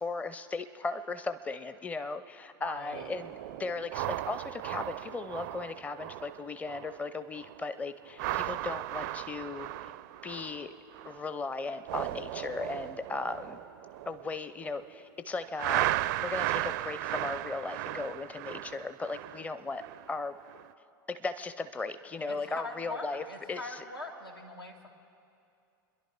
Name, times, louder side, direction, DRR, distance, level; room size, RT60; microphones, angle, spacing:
voice 1, 0.0-9.9 10.2-10.7 11.0-13.6 14.1-15.9 16.2-20.4 21.1-23.8, left 3 dB, 10° left, 11 dB, 0.6 m, -37 dB
voice 2, 2.6-3.1 22.3-24.9, left 2 dB, 90° left, 0 dB, 1.7 m, -42 dB
sound 1, 2.9-7.1 7.3-7.6 8.1-11.3 11.6-14.9 15.6-20.1 20.5-20.7, right 15 dB, 55° right, 0.4 m, -36 dB
26.5 x 11.0 x 4.5 m, 2.5 s
figure-of-eight pair, 80°, 12 cm